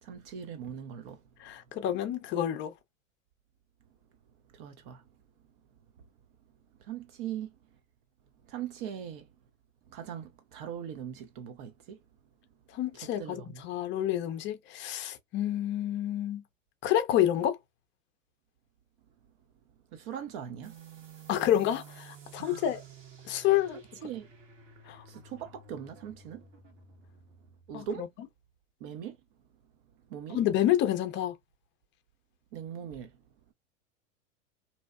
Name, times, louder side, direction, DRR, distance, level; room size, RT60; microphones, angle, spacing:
voice 1, 0.0-1.2 4.6-5.0 6.9-7.5 8.5-9.2 9.9-12.0 13.2-13.6 19.9-20.7 22.4-22.6 23.3-23.5 24.0-24.3 25.1-26.4 27.7-28.1 28.8-29.2 30.1-30.4 32.5-33.1, right 9 dB, 45° right, 0.5 m, -40 dB
voice 2, 1.4-2.7 12.7-16.4 16.8-17.6 21.3-22.8 23.2-24.1 24.9-25.0 27.7-28.1 30.3-31.4, left 12 dB, 30° left, 0.5 m, -29 dB
sound 1, 20.6-27.9, right 5 dB, 70° right, 1.3 m, -52 dB
2.7 x 2.0 x 2.3 m
hypercardioid pair, 105°, 39 cm